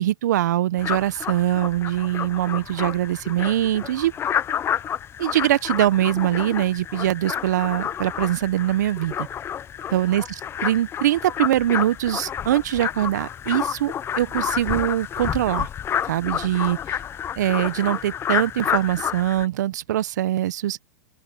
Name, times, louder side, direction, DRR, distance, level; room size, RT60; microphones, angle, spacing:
voice 1, 0.0-4.1 5.2-9.3 9.9-15.7 16.1-17.0 17.4-20.8, right 13 dB, 70° right, 1.0 m, -23 dB
sound 1, 0.8-19.5, left 9 dB, 25° left, 0.7 m, -29 dB
open air
hypercardioid pair, 105°, 10 cm